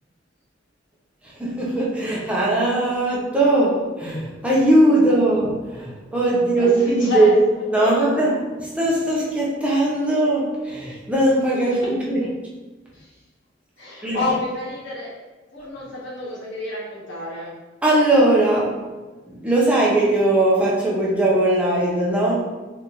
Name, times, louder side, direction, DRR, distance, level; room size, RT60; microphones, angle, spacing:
voice 1, 1.4-12.2 14.0-14.2 17.8-18.8 19.3-22.4, right 1 dB, 5° right, -6 dB, 0.6 m, -19 dB
voice 2, 6.6-7.3 7.8-8.3 11.6-11.9 12.9-13.1 13.8-15.1 15.5-17.5, left 2 dB, 75° left, -5 dB, 1.1 m, -29 dB
3.8 x 2.5 x 2.9 m, 1.2 s
head